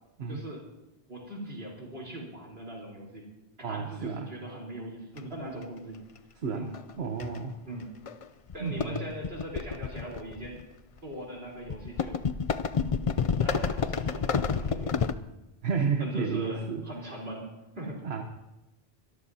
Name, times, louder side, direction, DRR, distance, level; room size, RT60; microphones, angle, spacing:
voice 1, 0.3-0.6 1.1-3.3 3.7-6.0 6.5-6.7 7.7-7.9 8.5-10.6 11.0-12.2 13.4-14.9 16.0-17.5 17.8-18.0, right 1 dB, 70° right, -2 dB, 4.1 m, -40 dB
voice 2, 3.6-4.3 6.4-6.7 7.0-7.6 8.6-9.0 15.6-16.9 18.0-18.2, right 5 dB, 90° right, 4 dB, 1.2 m, -31 dB
sound 1, 5.2-5.3 6.7-6.9 7.2-7.4 8.1-8.2 8.5-10.6 11.7-15.1, left 6 dB, 45° left, 0.5 m, -29 dB
23.5 x 13.5 x 2.8 m, 0.99 s
omnidirectional pair, 1.0 m